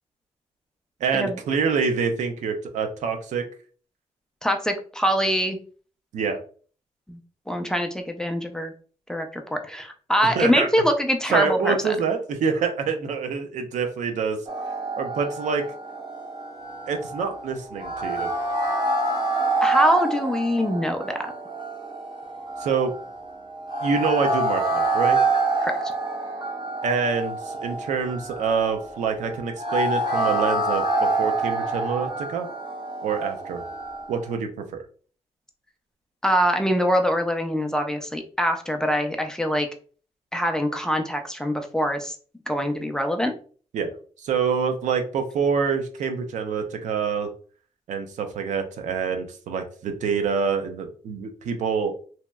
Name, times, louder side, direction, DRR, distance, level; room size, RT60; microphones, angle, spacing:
voice 1, 1.0-3.4 6.1-6.4 10.2-10.7 11.3-14.4 15.0-15.6 16.9-18.3 22.6-22.9 23.8-25.2 26.8-32.5 33.0-33.6 34.1-34.8 43.7-43.9 44.2-47.3 47.9-52.0, right 5 dB, 85° right, 6 dB, 0.5 m, -26 dB
voice 2, 4.4-5.6 7.1-7.2 7.5-8.7 9.1-12.0 19.6-21.3 25.6-25.8 36.2-39.7 40.3-42.2 42.5-43.3, equal, 5° left, 4 dB, 0.4 m, -24 dB
sound 1, 14.5-34.3, right 2 dB, 40° right, 0.8 m, -27 dB
3.0 x 2.8 x 2.2 m, 0.42 s
wide cardioid pair, 135°, 12 cm